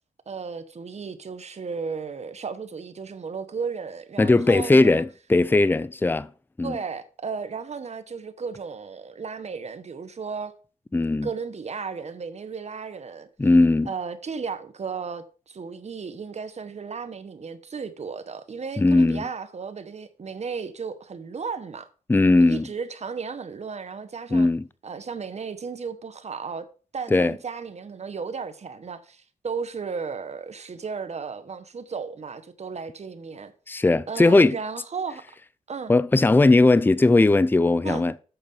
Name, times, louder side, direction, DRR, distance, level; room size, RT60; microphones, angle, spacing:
voice 1, 0.3-5.0 6.6-10.5 11.2-13.3 13.9-21.9 22.4-24.5 24.8-26.6 26.9-33.5 34.1-35.2 35.7-35.9 37.8-38.1, right 5 dB, 50° right, 1.1 m, -34 dB
voice 2, 4.2-6.3 6.6-6.8 10.9-11.3 13.4-13.9 18.8-19.2 22.1-22.7 24.3-24.6 27.1-27.3 33.7-34.5 35.9-38.1, left 2 dB, 15° left, 0.5 m, -18 dB
8.0 x 5.0 x 7.1 m
cardioid pair, 70°, 14 cm